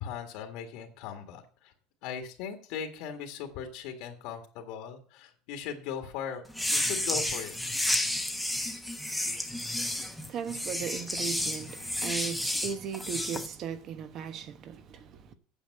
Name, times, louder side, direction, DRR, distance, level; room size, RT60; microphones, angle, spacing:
voice 1, 0.0-1.7 2.0-6.4 6.7-7.6, left 7 dB, 65° left, 1.9 m, -38 dB
sound 1, 6.5-13.5, left 1 dB, ahead, 1.1 m, -31 dB
voice 2, 9.2-15.3, right 8 dB, 35° right, 1.1 m, -38 dB
9.0 x 6.7 x 7.7 m
cardioid pair, 160°, 0 cm